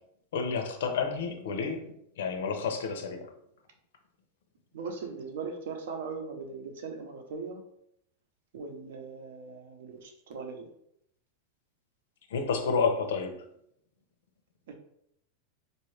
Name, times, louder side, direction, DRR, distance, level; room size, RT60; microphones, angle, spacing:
voice 1, 0.3-3.3 12.3-13.4, left 5 dB, 80° left, 6 dB, 0.7 m, -30 dB
voice 2, 4.7-7.6 8.5-10.7 14.7-14.8, right 4 dB, 70° right, 4 dB, 0.8 m, -39 dB
4.3 x 2.7 x 3.2 m, 0.74 s
supercardioid pair, 170°, 0 cm